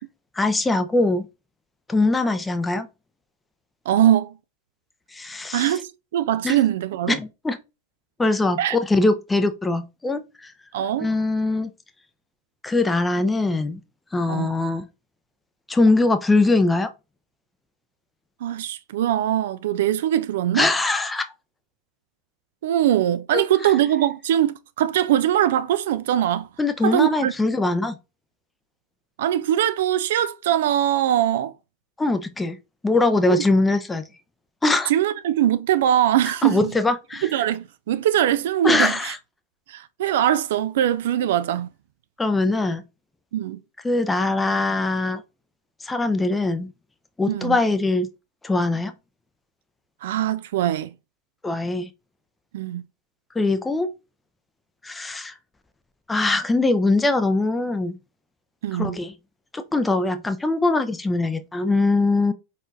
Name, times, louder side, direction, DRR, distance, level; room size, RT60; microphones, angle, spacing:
voice 1, 0.4-1.3 1.9-2.9 5.1-5.8 6.4-6.6 7.1-7.6 8.2-10.5 11.0-11.7 12.6-13.8 14.1-14.9 15.7-16.9 20.5-21.3 23.3-23.4 26.6-28.0 32.0-32.6 32.8-34.1 34.6-34.9 36.4-37.3 38.6-39.2 41.2-41.3 42.2-42.8 43.8-45.2 45.8-46.7 47.2-48.1 48.4-48.9 51.4-51.9 53.4-53.9 54.8-55.3 56.1-58.0 58.7-59.1 59.5-62.3, left 2 dB, 10° left, 0.6 m, -22 dB
voice 2, 3.9-4.3 5.5-7.2 8.6-8.8 10.7-11.1 14.3-14.5 18.4-20.7 22.6-26.5 26.8-27.3 29.2-31.5 33.3-33.4 34.9-36.7 37.2-39.1 39.7-41.7 43.3-43.6 47.3-47.6 50.0-50.9 52.5-52.8 58.6-59.0, right 11 dB, 55° right, 0.3 m, -22 dB
4.9 x 4.0 x 2.5 m
figure-of-eight pair, 90°, 0 cm